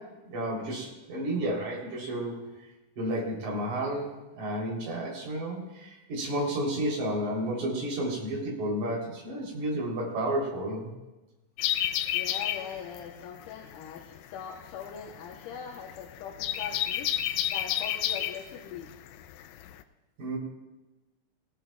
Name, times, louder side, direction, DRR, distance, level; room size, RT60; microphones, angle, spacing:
voice 1, 0.0-2.5 3.0-10.9 20.2-20.4, right 1 dB, 55° right, -3 dB, 5.0 m, -31 dB
sound 1, 11.6-19.8, left 12 dB, 90° left, 1.7 m, -31 dB
voice 2, 12.1-18.9, left 7 dB, 75° left, 1 dB, 2.5 m, -41 dB
19.0 x 18.0 x 2.4 m, 1.1 s
omnidirectional pair, 4.0 m